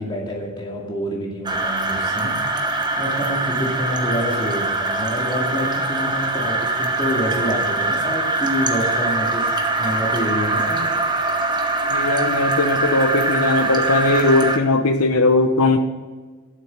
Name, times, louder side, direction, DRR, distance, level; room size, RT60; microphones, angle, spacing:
voice 1, 0.0-10.9 11.7-11.8, equal, 20° left, -2 dB, 2.4 m, -27 dB
sound 1, 1.4-14.6, right 2 dB, 20° right, 1.1 m, -22 dB
voice 2, 11.9-15.8, left 2 dB, 85° left, 6 dB, 1.0 m, -18 dB
12.5 x 7.5 x 6.2 m, 1.3 s
head